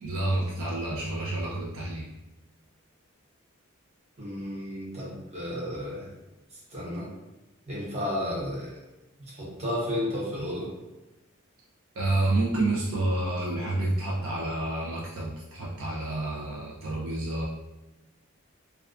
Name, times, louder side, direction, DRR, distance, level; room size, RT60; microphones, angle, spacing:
voice 1, 0.0-2.1 12.0-17.5, right 2 dB, 70° right, -4 dB, 0.4 m, -29 dB
voice 2, 4.2-6.1 6.7-7.1 7.7-8.7 9.3-10.7, left 1 dB, 30° right, -6 dB, 0.8 m, -32 dB
2.3 x 2.2 x 2.4 m, 1.0 s
head